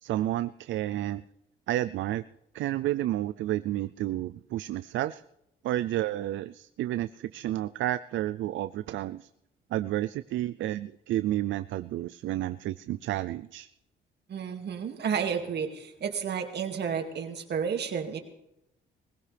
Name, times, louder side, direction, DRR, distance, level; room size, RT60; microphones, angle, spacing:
voice 1, 0.0-1.2 1.7-2.2 2.5-5.2 5.6-9.3 9.7-13.7, right 14 dB, 75° right, 14 dB, 0.4 m, -31 dB
voice 2, 14.3-18.2, right 7 dB, 60° right, 4 dB, 2.2 m, -31 dB
19.5 x 16.5 x 3.4 m, 0.86 s
cardioid pair, 90°, 20 cm